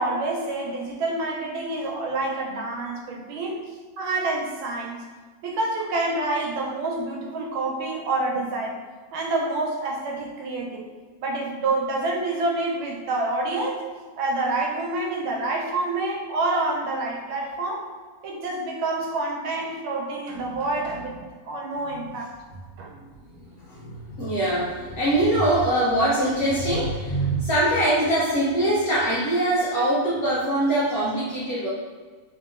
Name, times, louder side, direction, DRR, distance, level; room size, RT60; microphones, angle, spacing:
voice 1, 0.0-3.6 4.0-5.0 5.4-8.8 9.1-10.9 11.2-13.9 14.2-17.9 18.2-22.3 22.8-22.9, right 2 dB, 85° right, 0 dB, 1.4 m, -27 dB
voice 2, 23.6-31.7, right 1 dB, 70° left, -7 dB, 0.9 m, -23 dB
3.4 x 2.8 x 2.4 m, 1.5 s
omnidirectional pair, 2.2 m